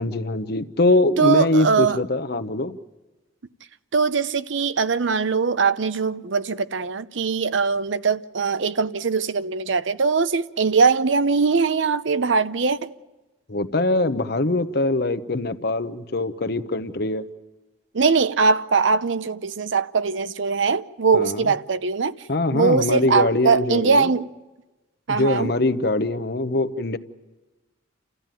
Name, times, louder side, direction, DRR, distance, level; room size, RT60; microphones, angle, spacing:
voice 1, 0.0-2.8 13.5-17.2 21.1-21.5 22.3-24.1 25.1-27.0, left 2 dB, 55° left, 1.0 m, -22 dB
voice 2, 1.2-2.0 3.9-12.9 17.9-22.1 22.5-24.3 25.1-25.5, right 5 dB, 75° right, 0.7 m, -21 dB
29.5 x 14.5 x 9.1 m
head